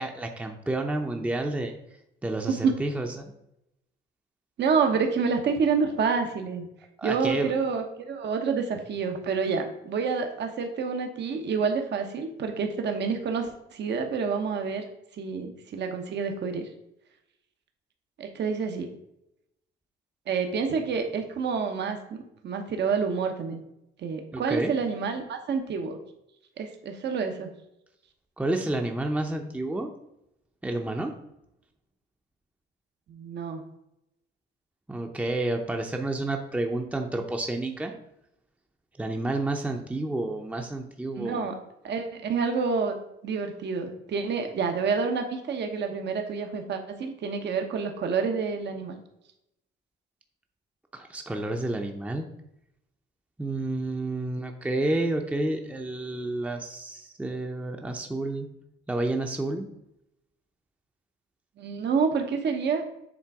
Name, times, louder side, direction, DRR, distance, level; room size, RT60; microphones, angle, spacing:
voice 1, 0.0-1.7 2.2-3.1 7.0-7.5 24.3-24.7 28.4-29.9 30.6-31.2 34.9-37.9 39.0-41.5 50.9-52.3 53.4-58.5 58.9-59.7, right 2 dB, 5° right, 3 dB, 0.7 m, -30 dB
voice 2, 2.5-2.8 4.6-6.7 7.0-14.8 15.2-16.7 18.2-18.9 20.3-23.6 24.0-26.0 26.6-27.5 33.1-33.6 41.2-41.6 41.8-43.0 43.2-49.0 61.6-62.8, right 5 dB, 60° right, 5 dB, 0.9 m, -28 dB
7.4 x 3.3 x 4.7 m, 0.84 s
cardioid pair, 90°, 20 cm